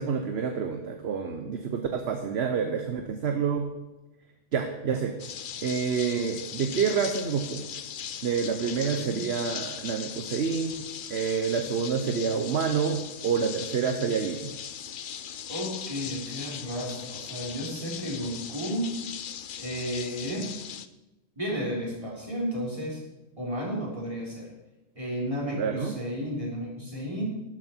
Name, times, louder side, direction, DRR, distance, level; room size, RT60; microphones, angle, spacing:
voice 1, 0.0-3.7 4.5-5.1 5.6-7.7 8.2-10.7 11.1-14.5 25.5-26.0, right 6 dB, 60° right, 6 dB, 1.1 m, -28 dB
sound 1, 5.2-20.9, left 8 dB, 55° left, 0.6 m, -39 dB
voice 2, 8.6-9.3 15.5-18.9 19.6-20.5 21.4-23.0 23.4-24.5 25.0-27.2, equal, 25° right, -3 dB, 3.5 m, -33 dB
12.5 x 11.0 x 4.4 m, 1.0 s
omnidirectional pair, 1.3 m